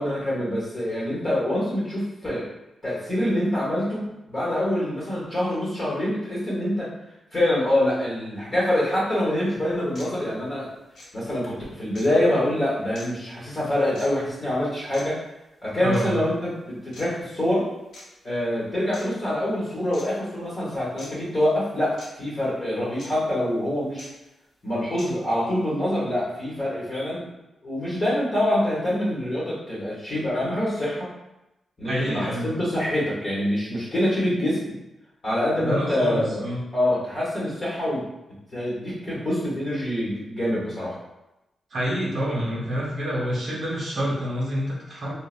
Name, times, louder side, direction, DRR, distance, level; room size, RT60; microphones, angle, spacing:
voice 1, 0.0-2.5 2.8-6.9 7.3-10.7 11.1-15.2 15.6-17.7 18.2-24.1 24.6-27.3 27.6-31.1 31.8-34.7 35.2-36.3 36.7-38.0 38.5-41.0, left 1 dB, 35° left, -7 dB, 1.1 m, -25 dB
sound 1, 9.2-9.3 9.9-10.1 10.9-11.1 11.9-12.1 12.9-13.1 13.9-14.1 14.9-15.0 15.9-16.1 16.9-17.0 17.9-18.0 18.9-19.1 19.9-20.1 21.0-21.1 22.0-22.1 23.0-23.1 24.0-24.1 25.0-25.1, left 1 dB, 75° left, 0.8 m, -42 dB
voice 2, 15.8-16.2 31.8-32.6 35.6-36.6 41.7-45.1, equal, 55° right, -5 dB, 0.9 m, -27 dB
3.1 x 2.2 x 2.4 m, 0.94 s
cardioid pair, 110°, 0 cm